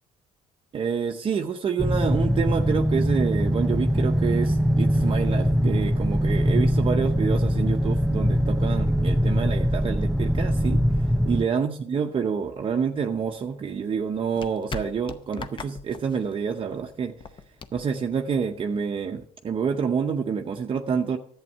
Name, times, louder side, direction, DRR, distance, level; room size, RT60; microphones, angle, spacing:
voice 1, 0.7-10.8 11.3-17.1 17.7-21.2, right 6 dB, 35° right, 4 dB, 0.7 m, -27 dB
sound 1, 1.8-11.5, equal, ahead, 0.5 m, -22 dB
sound 2, 12.9-18.8, left 5 dB, 35° left, 0.7 m, -42 dB
11.0 x 8.1 x 5.5 m, 0.67 s
cardioid pair, 100°, 15 cm